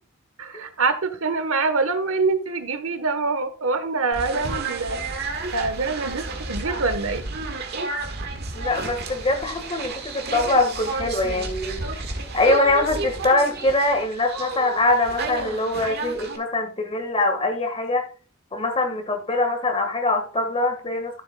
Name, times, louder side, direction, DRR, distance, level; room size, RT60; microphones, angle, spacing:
voice 1, 0.4-7.2, right 4 dB, 80° right, 10 dB, 1.1 m, -25 dB
sound 1, 4.1-16.4, right 3 dB, 50° right, 1.6 m, -31 dB
voice 2, 8.5-18.0 18.5-21.2, left 2 dB, 25° left, 6 dB, 1.6 m, -23 dB
13.5 x 7.4 x 2.3 m, 0.36 s
head